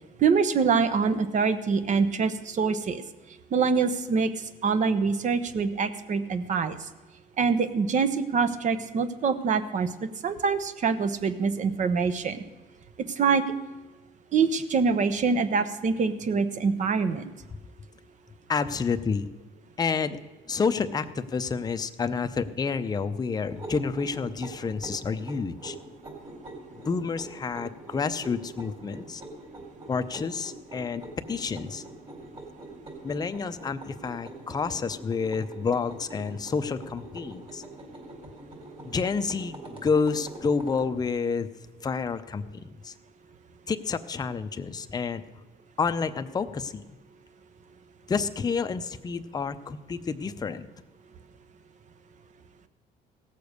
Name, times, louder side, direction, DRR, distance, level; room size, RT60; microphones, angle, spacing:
voice 1, 0.2-3.0 3.5-4.3 4.6-6.8 7.4-9.9 10.2-12.4 13.2-13.4 14.3-17.3, right 5 dB, 45° right, 12 dB, 1.0 m, -25 dB
voice 2, 18.5-19.3 19.8-20.2 20.5-25.8 26.8-29.2 29.9-31.0 31.3-31.8 33.0-37.6 38.8-41.5 41.8-42.9 43.7-45.2 45.8-47.0 48.1-50.7, left 5 dB, 25° left, 9 dB, 0.6 m, -29 dB
sound 1, 23.5-40.9, right 2 dB, 30° right, 4.4 m, -44 dB
17.0 x 6.9 x 6.5 m, 1.2 s
cardioid pair, 110°, 17 cm